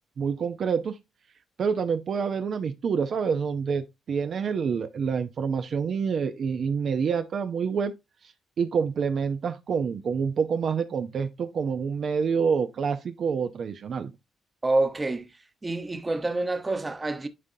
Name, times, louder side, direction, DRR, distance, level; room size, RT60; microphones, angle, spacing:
voice 1, 0.2-1.0 1.6-7.9 8.6-14.1, right 6 dB, 55° right, 0.6 m, -27 dB
voice 2, 14.6-15.3 15.6-17.3, right 2 dB, 20° right, 1.0 m, -27 dB
11.0 x 3.8 x 2.7 m
cardioid pair, 90°, 0 cm